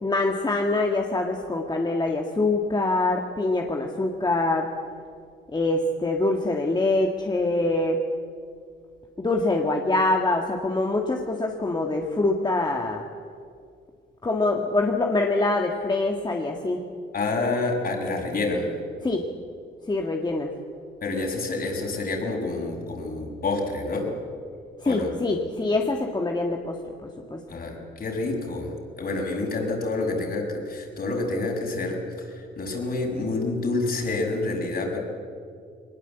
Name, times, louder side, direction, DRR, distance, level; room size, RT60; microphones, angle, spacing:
voice 1, 0.0-4.7 5.5-8.0 9.2-13.0 14.2-16.8 19.0-19.3 19.9-20.5 24.8-27.4, left 2 dB, 20° left, 2 dB, 1.8 m, -24 dB
voice 2, 17.1-18.7 21.0-24.1 24.8-25.1 27.5-35.0, left 3 dB, 50° left, 0 dB, 6.2 m, -28 dB
22.0 x 20.0 x 8.1 m, 2.3 s
cardioid pair, 90°, 20 cm